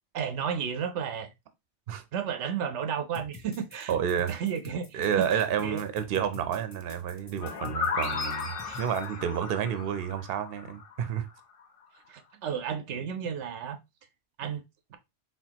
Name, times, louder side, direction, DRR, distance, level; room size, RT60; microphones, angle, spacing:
voice 1, 0.1-1.3 2.1-3.9 4.3-5.8 8.6-8.8 12.1-13.8 14.4-14.6 14.9-15.0, right 7 dB, 90° right, 1.0 m, -33 dB
sound 1, 3.1-9.1, left 4 dB, 20° left, 0.5 m, -48 dB
voice 2, 3.9-4.4 4.9-11.3, right 8 dB, 60° right, 0.8 m, -30 dB
sound 2, 7.4-11.2, left 5 dB, 55° left, 0.9 m, -34 dB
4.4 x 4.0 x 2.8 m
omnidirectional pair, 1.2 m